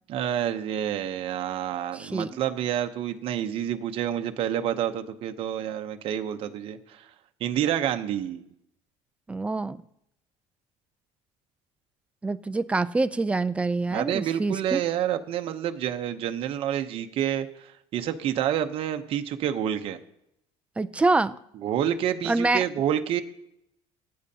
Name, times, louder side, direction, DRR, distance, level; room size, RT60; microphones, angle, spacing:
voice 1, 0.1-7.1 7.4-8.4 13.9-20.0 21.6-23.2, right 10 dB, 50° right, 6 dB, 0.8 m, -28 dB
voice 2, 1.9-2.4 9.3-9.8 12.2-14.8 20.8-21.4 22.3-22.6, right 3 dB, 10° right, 13 dB, 0.3 m, -26 dB
20.5 x 9.5 x 2.8 m, 0.79 s
cardioid pair, 150°, 12 cm